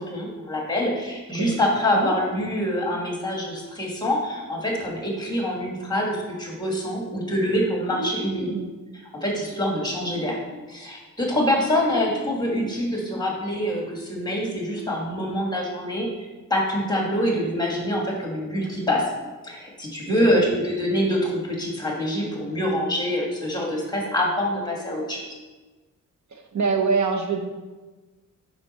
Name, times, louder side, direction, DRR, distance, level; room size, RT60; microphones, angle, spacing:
voice 1, 0.0-8.5 8.9-10.4 10.7-19.0 19.4-25.3, left 1 dB, 10° left, -1 dB, 1.6 m, -25 dB
voice 2, 8.0-8.7 20.1-20.4 26.3-27.4, right 4 dB, 60° right, 3 dB, 1.0 m, -25 dB
10.5 x 5.1 x 4.2 m, 1.3 s
wide cardioid pair, 175°, 33 cm